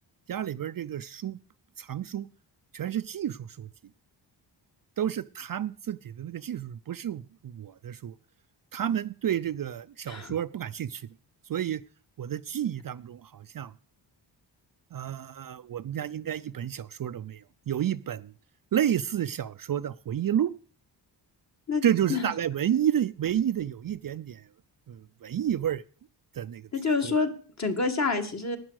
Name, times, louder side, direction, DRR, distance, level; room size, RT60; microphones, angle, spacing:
voice 1, 0.3-1.4 1.8-2.3 2.7-3.7 5.0-8.1 8.7-11.1 11.5-11.8 12.2-13.7 14.9-18.3 18.7-20.5 21.8-24.4 24.9-25.8 26.3-26.7 27.0-27.2, right 10 dB, 50° right, 12 dB, 0.6 m, -30 dB
voice 2, 26.7-27.3 27.6-28.6, left 4 dB, 35° left, 5 dB, 2.0 m, -27 dB
12.5 x 9.7 x 6.4 m, 0.41 s
wide cardioid pair, 125°, 44 cm